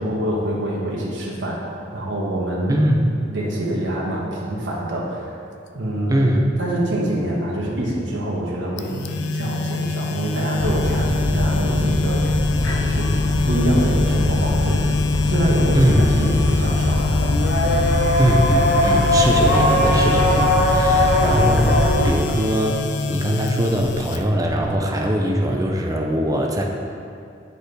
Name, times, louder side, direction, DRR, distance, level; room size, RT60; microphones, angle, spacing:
voice 1, 0.0-1.6 1.9-2.8 3.3-5.4 5.7-6.2 6.6-12.3 12.8-13.1 13.4-14.8 15.2-17.2, right 1 dB, 75° right, -5 dB, 1.3 m, -25 dB
voice 2, 2.7-3.1 6.1-6.5 15.7-16.0 18.2-22.8 23.1-26.6, right 1 dB, 20° right, 1 dB, 0.4 m, -21 dB
sound 1, 8.8-24.7, left 4 dB, 65° left, 0.3 m, -26 dB
sound 2, 10.6-22.1, left 1 dB, 85° left, 0.8 m, -20 dB
10.5 x 4.1 x 3.3 m, 2.4 s
head